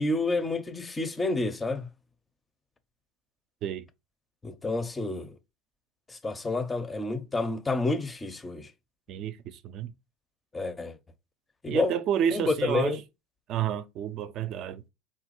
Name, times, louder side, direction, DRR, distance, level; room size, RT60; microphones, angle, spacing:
voice 1, 0.0-1.9 4.4-5.3 6.2-8.7 10.5-11.0 11.6-11.9 12.3-13.0, left 3 dB, 20° left, 0.4 m, -29 dB
voice 2, 9.1-9.9 11.7-13.0 13.5-14.8, right 9 dB, 55° right, 0.3 m, -30 dB
3.0 x 2.3 x 2.9 m
hypercardioid pair, 85°, 0 cm